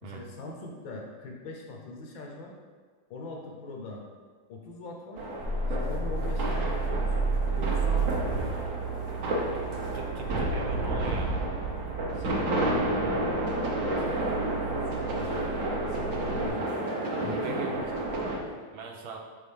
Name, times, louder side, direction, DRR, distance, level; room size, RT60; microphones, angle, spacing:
voice 1, 0.0-2.5 3.1-4.0 4.5-5.2 5.7-7.3 7.5-8.5 12.1-15.4 15.9-16.7 17.1-17.9 18.2-18.3, left 2 dB, 75° left, 1 dB, 1.7 m, -41 dB
sound 1, 5.2-18.4, right 1 dB, 55° right, 1.0 m, -31 dB
sound 2, 5.4-16.5, right 4 dB, 20° right, 1.0 m, -33 dB
voice 2, 9.9-11.4 17.4-17.7 18.7-19.2, right 4 dB, 80° right, 1 dB, 1.6 m, -40 dB
8.4 x 3.7 x 3.6 m, 1.5 s
omnidirectional pair, 2.2 m